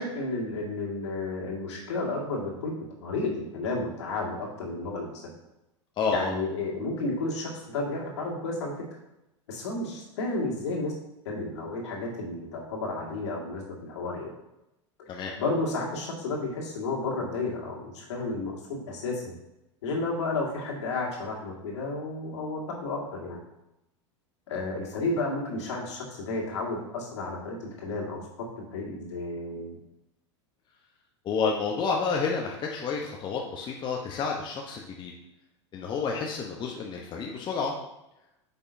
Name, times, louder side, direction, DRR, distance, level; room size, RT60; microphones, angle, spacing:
voice 1, 0.0-2.7 3.0-5.2 6.1-8.7 9.5-10.9 11.3-14.3 15.1-19.3 19.8-23.4 24.5-28.5 28.7-29.8, left 2 dB, 65° left, -1 dB, 2.0 m, -32 dB
voice 2, 6.0-6.3 15.1-15.3 31.2-35.1 35.7-37.7, left 5 dB, 30° left, 0 dB, 0.9 m, -30 dB
8.3 x 5.4 x 2.7 m, 0.90 s
hypercardioid pair, 90°, 15 cm